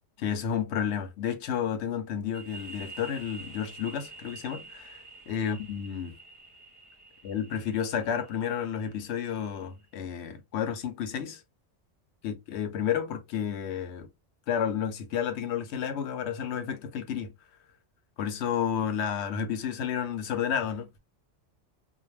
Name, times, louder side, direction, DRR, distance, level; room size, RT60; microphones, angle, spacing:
voice 1, 0.2-5.0 5.3-6.2 7.2-11.4 12.2-14.1 14.5-17.3 18.2-20.9, left 8 dB, 70° left, 0.8 m, -31 dB
sound 1, 2.3-9.8, right 3 dB, 35° right, 0.5 m, -48 dB
2.3 x 2.0 x 3.1 m
omnidirectional pair, 1.2 m